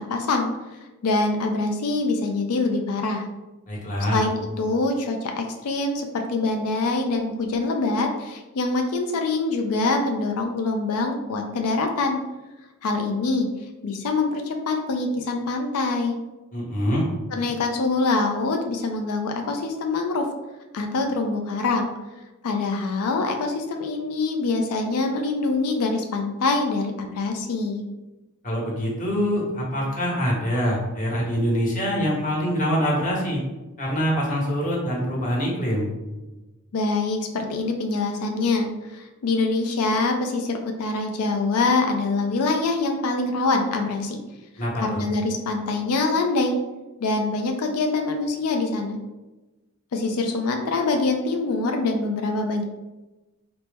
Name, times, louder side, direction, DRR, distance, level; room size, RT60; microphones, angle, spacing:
voice 1, 0.1-0.5 1.0-3.3 4.1-12.2 12.8-13.5 13.8-16.1 17.3-20.3 20.7-21.9 22.4-27.8 36.7-44.2 44.8-46.6 47.0-49.0 49.9-52.6, left 3 dB, 75° left, 3 dB, 0.4 m, -24 dB
voice 2, 3.7-4.2 16.5-17.0 28.4-33.4 33.8-35.9 44.6-45.0, equal, 35° left, -4 dB, 1.1 m, -24 dB
4.2 x 2.0 x 3.3 m, 1.1 s
head